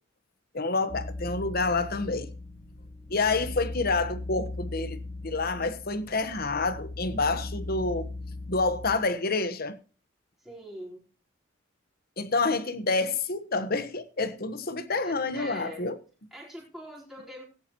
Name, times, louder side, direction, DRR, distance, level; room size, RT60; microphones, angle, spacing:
voice 1, 0.5-2.3 3.1-8.1 8.5-9.8 12.2-15.9, left 3 dB, 50° left, 1.2 m, -28 dB
sound 1, 0.9-9.0, left 2 dB, 20° left, 1.2 m, -38 dB
voice 2, 10.4-11.0 14.9-15.9 16.3-17.4, equal, ahead, 4.2 m, -43 dB
17.0 x 10.5 x 3.0 m
head